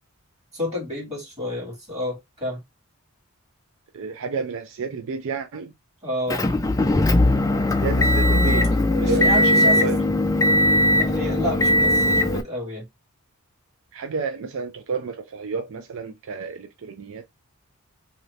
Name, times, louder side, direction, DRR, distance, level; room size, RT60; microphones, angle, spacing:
voice 1, 0.5-2.6 6.0-6.4 9.0-9.9 11.0-12.9, left 1 dB, 30° right, 1.8 m, -30 dB
voice 2, 3.9-5.7 7.6-8.7 9.0-10.0 13.9-17.3, right 5 dB, 60° right, 0.4 m, -30 dB
Motor vehicle (road) / Engine, 6.3-12.4, left 1 dB, 15° left, 0.3 m, -19 dB
2.8 x 2.7 x 3.1 m
head